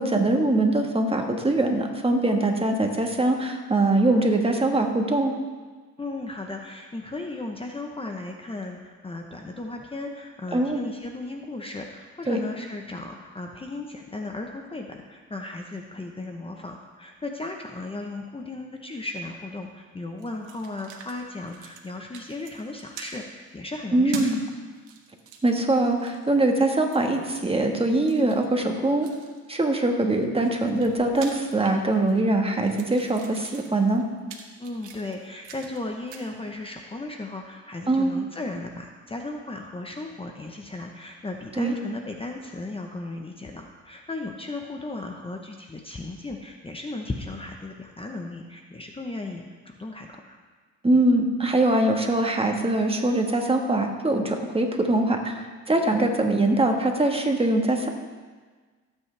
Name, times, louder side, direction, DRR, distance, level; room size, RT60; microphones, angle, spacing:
voice 1, 0.0-5.3 10.5-10.8 12.3-12.4 23.9-24.4 25.4-29.1 29.5-34.0 37.9-38.1 41.6-41.7 50.8-57.9, right 2 dB, 20° right, 3 dB, 1.5 m, -22 dB
voice 2, 6.0-24.6 34.6-50.4, left 2 dB, 20° left, 2 dB, 1.0 m, -36 dB
sound 1, 20.2-21.2 21.4-21.9 22.1-23.1 24.1-24.4 24.8-26.3 26.9-27.4 28.0-29.5 30.1-32.2 32.5-35.8 36.1-36.3, right 7 dB, 85° right, 1.4 m, -42 dB
17.5 x 8.6 x 3.4 m, 1.4 s
cardioid pair, 90°, 30 cm